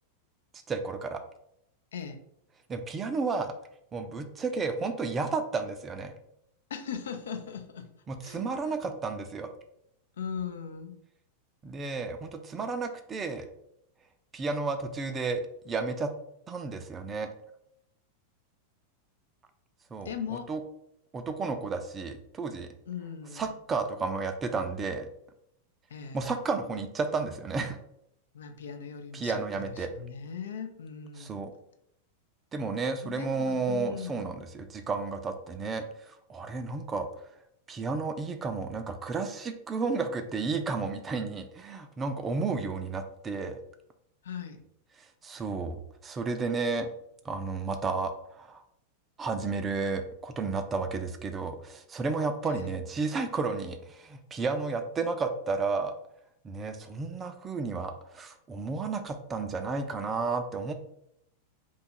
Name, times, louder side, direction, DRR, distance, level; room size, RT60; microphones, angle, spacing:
voice 1, 0.7-1.2 2.7-3.5 3.9-6.1 8.1-9.5 11.6-13.5 14.3-16.1 16.5-17.3 19.9-20.1 20.5-20.6 21.1-22.7 23.4-25.1 26.1-27.8 29.1-29.9 31.2-31.5 32.5-37.1 37.7-43.6 45.2-45.8 46.0-46.9 47.2-48.6 49.2-55.9 56.4-60.7, right 4 dB, 20° right, 7 dB, 0.4 m, -32 dB
voice 2, 1.9-2.2 6.7-7.9 8.2-8.7 10.2-11.0 20.0-20.5 22.9-23.6 25.9-26.3 28.3-31.5 33.0-34.3 44.2-44.6 52.5-52.7, left 7 dB, 65° left, 7 dB, 0.4 m, -39 dB
2.9 x 2.3 x 4.2 m, 0.75 s
figure-of-eight pair, 90°, 0 cm